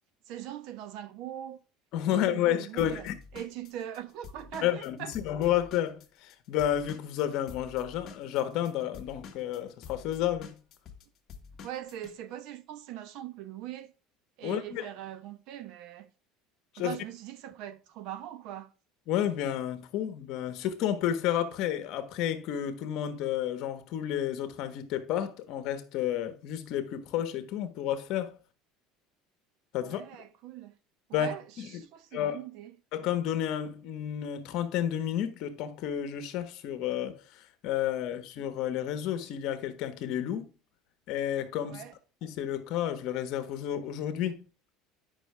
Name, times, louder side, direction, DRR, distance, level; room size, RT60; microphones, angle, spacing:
voice 1, 0.3-1.6 2.1-5.1 11.6-13.9 14.4-16.1 16.8-18.7 29.8-30.8 31.1-32.7 41.7-41.9, right 11 dB, 65° right, 1.0 m, -41 dB
voice 2, 1.9-3.1 4.6-10.6 14.4-14.9 16.7-17.0 19.1-28.3 29.7-30.0 31.1-31.7 32.1-32.4 32.9-37.2 37.6-40.5 41.1-41.8 42.2-44.4, left 11 dB, 60° left, 1.3 m, -31 dB
Drum kit / Drum, 2.8-6.3 6.6-12.1, left 6 dB, 40° left, 1.4 m, -48 dB
9.0 x 5.7 x 3.4 m
cardioid pair, 135°, 0 cm